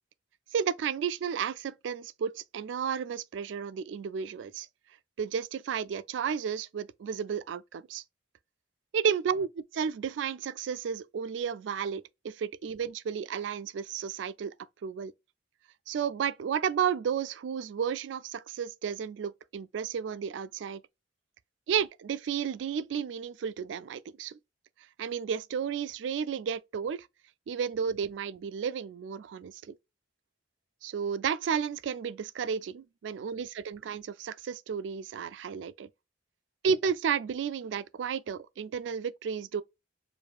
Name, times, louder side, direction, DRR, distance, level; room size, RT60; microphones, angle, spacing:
voice 1, 0.5-4.7 5.2-8.0 8.9-14.5 14.8-15.1 15.9-20.8 21.7-24.4 25.0-27.1 27.5-29.6 30.8-35.9 36.6-39.6, right 7 dB, 80° right, 0.3 m, -32 dB
4.8 x 2.6 x 2.2 m
head